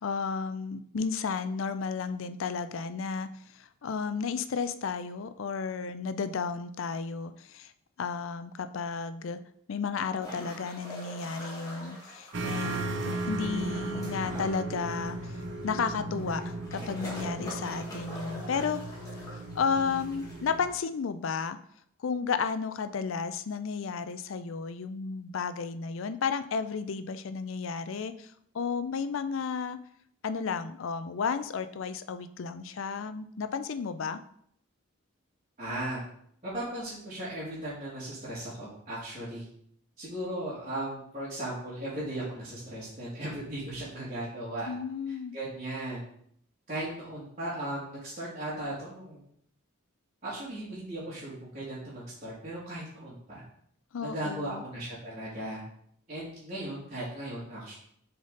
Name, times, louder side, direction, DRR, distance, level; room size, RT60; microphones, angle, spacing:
voice 1, 0.0-3.3 3.5-7.7 8.0-9.4 9.7-15.3 15.6-18.8 19.3-21.6 22.0-29.8 30.2-34.2 44.7-45.3 53.9-54.6, left 5 dB, 65° left, 11 dB, 0.4 m, -33 dB
sound 1, 10.2-20.5, left 1 dB, 15° left, 1.8 m, -45 dB
sound 2, 12.3-20.7, right 2 dB, 55° right, 0.7 m, -36 dB
voice 2, 35.6-36.0 36.4-39.5 40.0-44.7 45.1-46.0 46.7-49.2 50.2-53.4 54.0-55.6 56.1-57.7, right 1 dB, 35° right, -12 dB, 2.0 m, -37 dB
6.7 x 4.1 x 3.9 m, 0.67 s
head